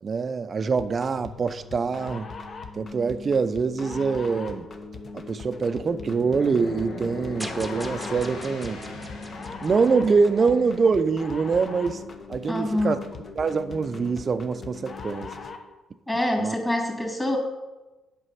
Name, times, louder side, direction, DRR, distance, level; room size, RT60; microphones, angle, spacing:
voice 1, 0.0-2.3 2.7-4.7 5.1-8.8 9.6-12.0 12.3-13.0 13.4-15.3 16.4-16.5, right 5 dB, 40° right, 0.5 m, -24 dB
sound 1, 0.8-15.7, left 4 dB, 45° left, 1.0 m, -40 dB
sound 2, 6.2-11.3, left 3 dB, 75° left, 1.7 m, -39 dB
sound 3, 7.4-10.7, right 1 dB, ahead, 1.0 m, -42 dB
voice 2, 12.5-13.1 16.1-17.4, left 1 dB, 15° left, 2.1 m, -26 dB
8.0 x 6.1 x 5.7 m
cardioid pair, 90°, 0 cm